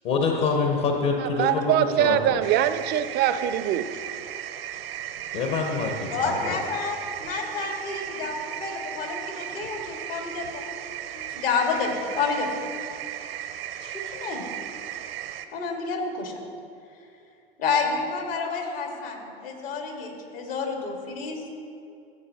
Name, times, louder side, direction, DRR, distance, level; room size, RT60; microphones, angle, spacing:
voice 1, 0.0-2.4 5.3-6.6, left 4 dB, 55° left, 2 dB, 1.1 m, -26 dB
voice 2, 1.2-3.9, right 11 dB, 35° right, 12 dB, 0.4 m, -23 dB
sound 1, 2.4-15.5, right 11 dB, 75° right, 0.7 m, -36 dB
voice 3, 6.1-10.6 11.1-12.5 13.8-14.4 15.5-16.4 17.6-21.4, left 4 dB, 70° left, 1 dB, 1.9 m, -29 dB
14.5 x 7.5 x 2.9 m, 2.6 s
hypercardioid pair, 90°, 30 cm